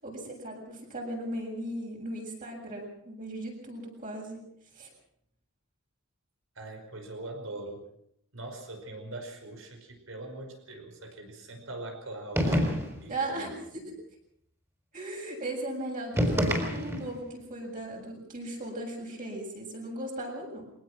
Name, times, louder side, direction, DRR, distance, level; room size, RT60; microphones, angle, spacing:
voice 1, 0.0-4.5 4.7-4.9 13.1-13.8 14.9-20.7, right 1 dB, 40° right, 0 dB, 7.7 m, -37 dB
voice 2, 6.6-7.8 8.3-13.5, right 2 dB, 80° right, 5 dB, 5.1 m, -42 dB
sound 1, 12.3-13.1 16.1-17.2, equal, 15° right, 4.7 m, -27 dB
23.0 x 19.5 x 6.2 m, 0.72 s
head